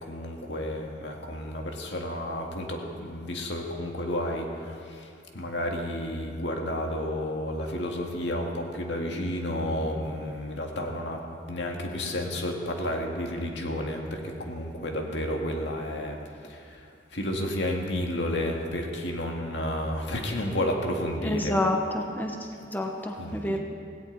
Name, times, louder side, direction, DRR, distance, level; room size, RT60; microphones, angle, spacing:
voice 1, 0.0-11.2 11.5-21.5 23.2-23.6, left 1 dB, 85° left, 1 dB, 1.9 m, -31 dB
voice 2, 21.2-23.6, left 1 dB, 10° left, 2 dB, 1.0 m, -29 dB
17.0 x 17.0 x 4.0 m, 2.4 s
head